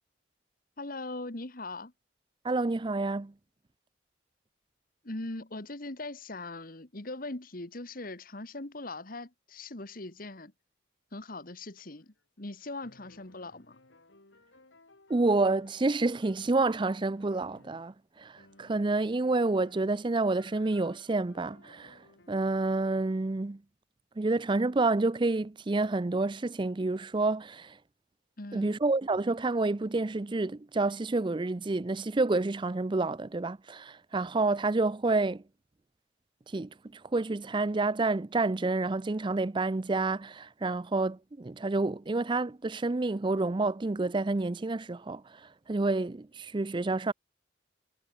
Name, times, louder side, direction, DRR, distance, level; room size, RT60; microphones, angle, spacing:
voice 1, 0.8-1.9 5.0-10.5 11.1-13.8 28.4-28.7, left 2 dB, 50° left, 1.8 m, -40 dB
voice 2, 2.4-3.3 15.1-23.6 24.2-27.8 28.5-35.4 36.5-47.1, right 3 dB, 25° right, 0.5 m, -29 dB
sound 1, 11.8-12.6 12.8-18.0 18.4-22.6, left 2 dB, 70° left, 3.8 m, -60 dB
head